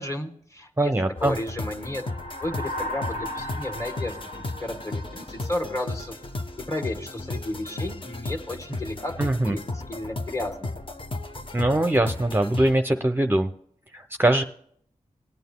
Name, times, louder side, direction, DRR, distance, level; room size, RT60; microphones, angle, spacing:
voice 1, 0.0-0.9 1.2-2.0 2.4-4.2 4.6-6.1 6.6-9.1 9.5-10.7, left 1 dB, 20° left, 5 dB, 1.9 m, -32 dB
voice 2, 0.8-1.4 9.2-9.6 11.5-13.5 13.9-14.4, right 1 dB, 15° right, 6 dB, 0.7 m, -22 dB
sound 1, 1.2-12.8, left 2 dB, 40° left, 0.9 m, -35 dB
sound 2, 1.7-6.2, left 1 dB, 75° left, 3.7 m, -37 dB
19.5 x 9.1 x 2.2 m, 0.64 s
wide cardioid pair, 55°, 13 cm